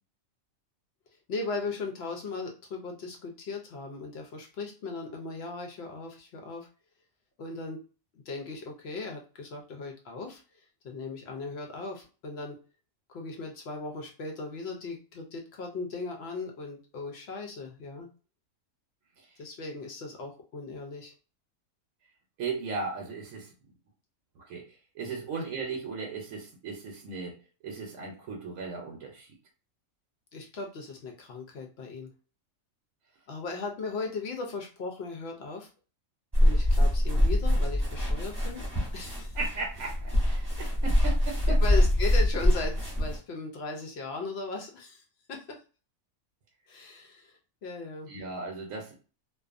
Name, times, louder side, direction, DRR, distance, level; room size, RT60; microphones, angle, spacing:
voice 1, 1.3-6.7 7.4-7.8 8.1-12.6 13.1-18.1 19.4-21.1 25.4-25.5 30.3-32.1 33.3-35.7 36.4-38.6 38.9-39.4 41.6-45.0 45.3-45.6 46.7-48.1, left 3 dB, 65° left, 2 dB, 0.7 m, -37 dB
voice 2, 22.4-23.5 24.5-24.6 25.0-27.4 27.6-29.3 39.3-41.6 48.1-49.0, right 4 dB, 75° right, 0 dB, 1.0 m, -36 dB
sound 1, 36.3-43.2, left 1 dB, 20° right, 0.9 m, -24 dB
2.5 x 2.2 x 2.4 m, 0.36 s
omnidirectional pair, 1.4 m